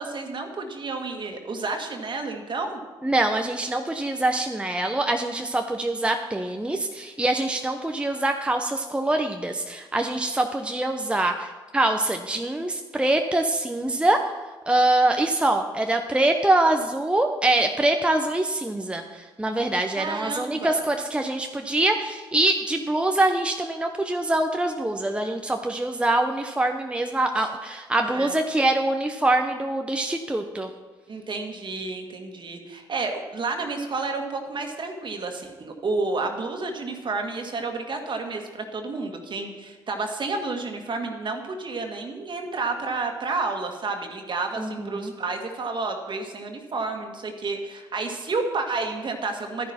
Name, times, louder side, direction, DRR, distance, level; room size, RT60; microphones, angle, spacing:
voice 1, 0.0-2.8 19.9-20.8 27.4-27.5 28.0-28.3 31.1-49.7, right 3 dB, 45° right, 4 dB, 1.8 m, -30 dB
voice 2, 3.0-14.2 14.7-30.7 44.6-45.1, right 2 dB, 10° right, 4 dB, 0.8 m, -24 dB
12.0 x 10.5 x 4.3 m, 1.3 s
hypercardioid pair, 45°, 11 cm